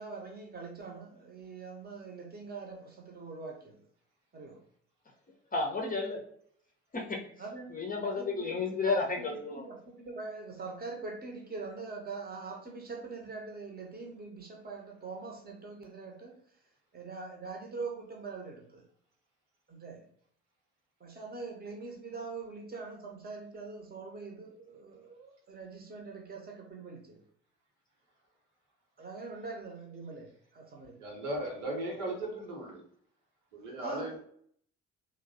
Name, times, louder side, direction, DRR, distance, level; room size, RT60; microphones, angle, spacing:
voice 1, 0.0-3.8 4.3-4.6 7.4-7.7 8.1-8.4 9.2-16.4 16.9-18.8 19.7-20.1 21.0-27.2 29.0-31.0 33.8-34.2, right 4 dB, 25° right, 1 dB, 0.8 m, -43 dB
voice 2, 5.5-6.2 6.9-7.2 7.7-9.6, left 3 dB, 20° left, 0 dB, 0.6 m, -32 dB
voice 3, 31.0-32.8 33.5-34.2, right 1 dB, 70° right, -2 dB, 0.9 m, -37 dB
3.0 x 2.0 x 2.6 m, 0.63 s
figure-of-eight pair, 45°, 38 cm